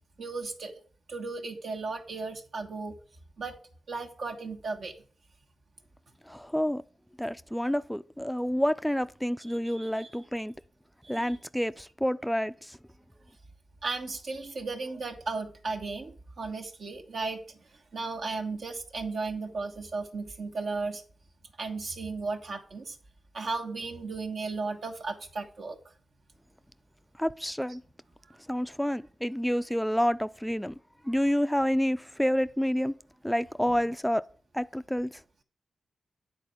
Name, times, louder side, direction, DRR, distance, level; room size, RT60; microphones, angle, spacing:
voice 1, 0.2-0.7 1.1-3.0 3.4-3.6 3.9-4.9 9.6-10.1 11.0-11.3 13.8-17.6 17.9-21.0 21.6-23.0 23.3-25.8 28.3-28.4, right 3 dB, 75° right, 1.4 m, -35 dB
voice 2, 6.3-6.8 7.2-10.5 11.1-12.8 27.2-27.8 28.5-30.8 31.0-33.0 33.2-34.3 34.5-35.2, equal, 5° left, 0.4 m, -29 dB
9.2 x 4.1 x 7.1 m
supercardioid pair, 40°, 0 cm